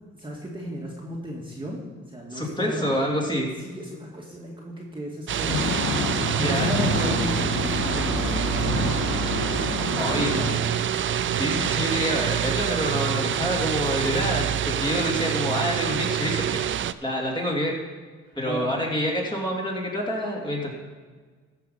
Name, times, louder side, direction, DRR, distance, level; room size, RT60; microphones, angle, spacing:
voice 1, 0.1-2.9 3.6-5.8 6.1-7.6 8.0-11.0 18.3-18.7, equal, 15° right, -3 dB, 2.1 m, -36 dB
voice 2, 2.3-3.5 6.1-6.8 10.0-10.3 11.3-16.6 17.0-17.8 18.4-20.7, equal, 15° left, -2 dB, 3.0 m, -27 dB
sound 1, 5.3-16.9, right 10 dB, 40° right, 0.4 m, -26 dB
sound 2, 5.5-10.6, left 4 dB, 90° left, 1.7 m, -28 dB
14.5 x 6.0 x 5.7 m, 1.4 s
cardioid pair, 90°, 30 cm